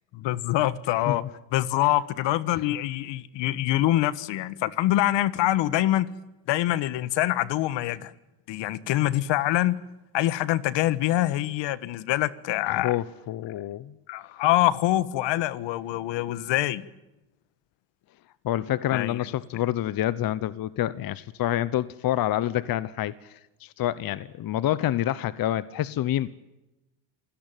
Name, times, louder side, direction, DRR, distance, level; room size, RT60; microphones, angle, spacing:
voice 1, 0.1-1.2 1.5-6.1 6.5-8.1 8.5-9.8 10.1-13.0 14.1-16.9 18.9-19.2, left 14 dB, 70° left, 17 dB, 1.5 m, -25 dB
voice 2, 12.7-13.9 18.4-26.3, left 13 dB, 50° left, 17 dB, 1.0 m, -27 dB
27.5 x 17.5 x 9.1 m, 0.96 s
cardioid pair, 105°, 46 cm